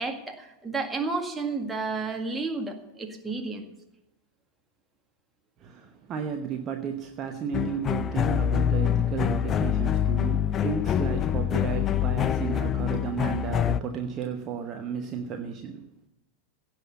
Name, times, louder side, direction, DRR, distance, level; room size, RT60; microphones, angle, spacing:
voice 1, 0.0-3.6, right 3 dB, 10° right, 1.9 m, -31 dB
voice 2, 5.6-15.9, right 7 dB, 30° right, 1.0 m, -33 dB
sound 1, 7.5-13.8, left 9 dB, 25° left, 0.4 m, -25 dB
16.5 x 6.0 x 8.2 m
figure-of-eight pair, 90°, 0 cm